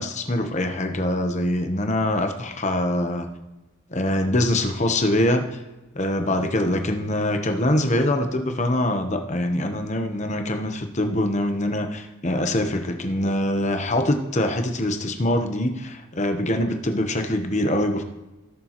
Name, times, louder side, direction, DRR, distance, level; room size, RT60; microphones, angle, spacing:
voice 1, 0.0-3.3 3.9-5.5 5.9-18.0, left 1 dB, 35° left, 6 dB, 1.0 m, -24 dB
17.0 x 6.8 x 3.0 m, 1.1 s
head